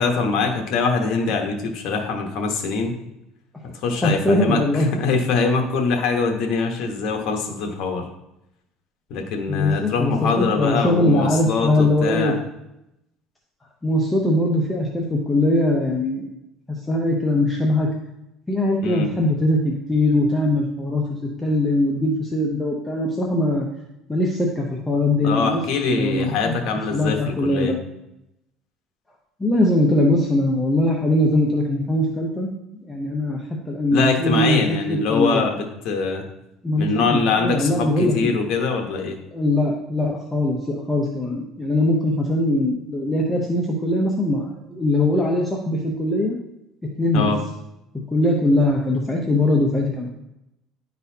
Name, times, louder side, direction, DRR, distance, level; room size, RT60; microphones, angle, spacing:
voice 1, 0.0-2.9 3.8-8.1 9.1-12.4 18.8-19.1 25.2-27.7 33.9-36.2 36.8-39.2 47.1-47.4, left 4 dB, 60° left, 3 dB, 1.1 m, -23 dB
voice 2, 4.0-4.9 9.5-12.3 13.8-16.3 16.7-17.9 18.5-21.0 21.4-23.7 24.1-25.6 25.9-26.5 26.9-27.8 29.4-32.5 32.8-35.5 36.6-38.3 39.3-46.4 47.0-47.3 48.1-50.1, left 1 dB, 10° left, -2 dB, 0.7 m, -21 dB
11.0 x 4.1 x 2.8 m, 0.86 s
cardioid pair, 145°, 0 cm